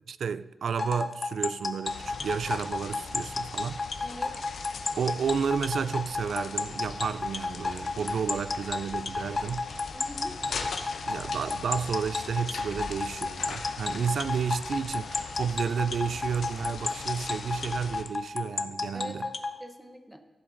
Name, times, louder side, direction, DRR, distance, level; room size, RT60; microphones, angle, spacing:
voice 1, 0.1-3.9 5.0-9.7 10.5-10.6 11.1-19.3, right 6 dB, 80° right, 0.3 m, -31 dB
sound 1, 0.8-19.5, left 3 dB, 35° left, 0.6 m, -31 dB
sound 2, 1.8-18.0, left 5 dB, 90° left, 0.9 m, -41 dB
voice 2, 4.0-4.4 7.9-8.1 9.9-10.4 18.9-20.2, equal, 5° right, 0.8 m, -44 dB
15.0 x 7.6 x 3.8 m
wide cardioid pair, 155°, 0 cm